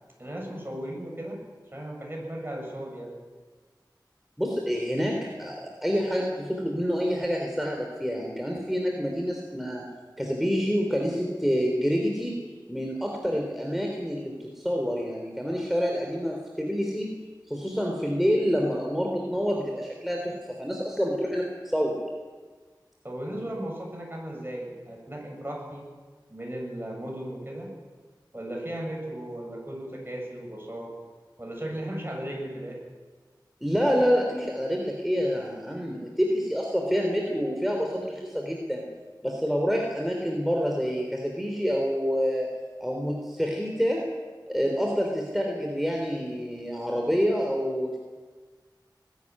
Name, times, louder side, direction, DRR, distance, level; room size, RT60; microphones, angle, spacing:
voice 1, 0.2-1.4 1.7-3.2 23.0-25.8 26.3-27.7 28.3-30.9 31.4-32.8, right 1 dB, 30° right, 0 dB, 7.5 m, -36 dB
voice 2, 4.4-9.8 10.2-12.4 12.7-17.1 17.5-20.3 20.6-22.0 33.6-38.8 39.2-42.5 42.8-44.0 44.5-48.0, equal, 5° right, 0 dB, 3.5 m, -27 dB
20.0 x 13.0 x 9.8 m, 1.4 s
wide cardioid pair, 45°, 8 cm